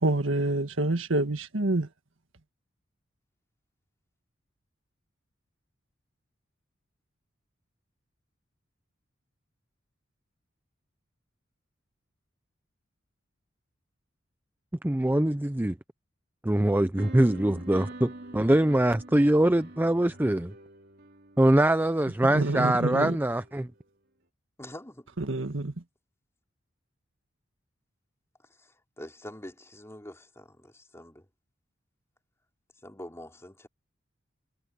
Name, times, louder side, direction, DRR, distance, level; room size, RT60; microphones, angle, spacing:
voice 1, 0.0-1.9 22.3-23.2 25.2-25.7, right 2 dB, 80° right, 1.8 m, -27 dB
voice 2, 14.8-15.8 16.4-20.5 21.4-23.7, right 1 dB, 10° right, 0.5 m, -23 dB
sound 1, 17.0-23.9, right 2 dB, 55° right, 3.3 m, -47 dB
voice 3, 24.6-25.1 28.6-31.3 32.8-33.7, left 1 dB, 15° left, 4.0 m, -45 dB
head